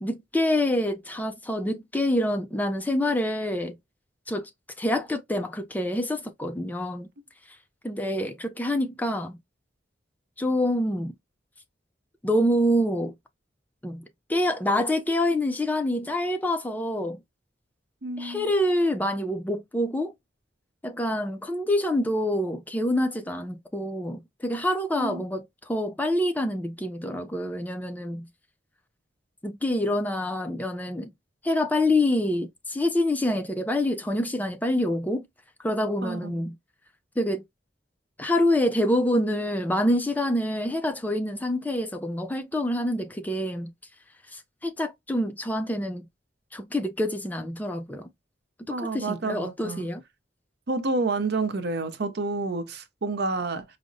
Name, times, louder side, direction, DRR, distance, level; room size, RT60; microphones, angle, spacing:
voice 1, 0.0-3.8 4.3-4.5 4.8-7.1 7.5-7.6 7.8-9.4 10.4-11.1 12.2-13.1 13.8-14.0 14.3-17.2 18.2-20.1 20.8-28.3 29.4-31.1 31.4-35.3 35.6-36.6 37.2-37.4 38.2-43.7 44.3-46.1 46.5-48.1 48.7-50.0, left 1 dB, 10° left, 0.4 m, -26 dB
voice 2, 18.0-18.5 25.0-25.2 36.0-36.4 48.7-49.9 50.7-53.6, right 3 dB, 60° right, 0.6 m, -29 dB
4.8 x 2.0 x 2.5 m
head